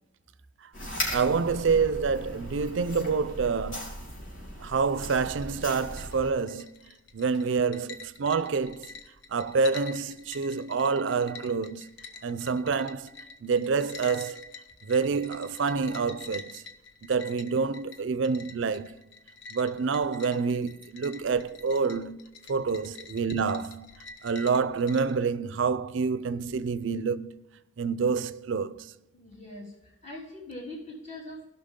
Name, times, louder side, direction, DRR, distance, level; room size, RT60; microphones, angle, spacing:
sound 1, 0.7-6.3, left 1 dB, 85° left, 3.8 m, -38 dB
voice 1, 1.1-3.9 4.6-6.7 7.1-8.9 9.3-11.9 12.2-13.1 13.4-14.5 14.8-16.6 17.0-18.9 19.5-22.2 22.5-23.9 24.2-27.4 27.8-28.9, right 5 dB, 65° right, 0.4 m, -27 dB
sound 2, 5.4-25.2, left 4 dB, 60° left, 0.8 m, -47 dB
voice 2, 29.1-31.4, left 1 dB, 40° left, 3.4 m, -42 dB
16.5 x 5.8 x 3.6 m
head